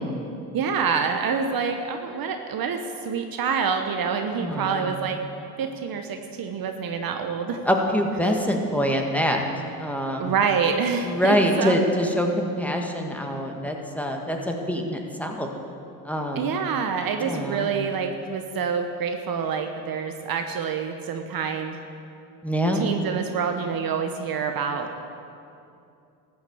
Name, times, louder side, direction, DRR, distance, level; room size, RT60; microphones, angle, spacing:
voice 1, 0.5-5.2 5.6-7.6 10.2-11.8 16.3-21.8 22.7-24.9, right 6 dB, 50° right, 5 dB, 1.1 m, -27 dB
voice 2, 4.3-4.9 7.7-9.4 9.8-10.4 11.0-15.5 16.0-16.6 17.2-17.7 22.4-22.9, equal, 5° left, 1 dB, 1.9 m, -25 dB
13.5 x 7.1 x 7.9 m, 2.6 s
hypercardioid pair, 70°, 46 cm